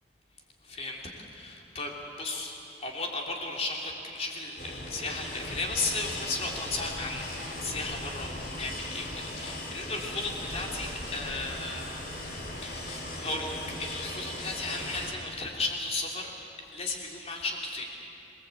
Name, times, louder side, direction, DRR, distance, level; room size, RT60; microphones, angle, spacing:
voice 1, 0.6-12.0 12.3-16.3 16.7-17.9, left 2 dB, 35° left, 0 dB, 3.4 m, -35 dB
sound 1, 4.6-15.1, left 1 dB, 55° left, 3.6 m, -38 dB
26.5 x 19.5 x 8.5 m, 2.8 s
head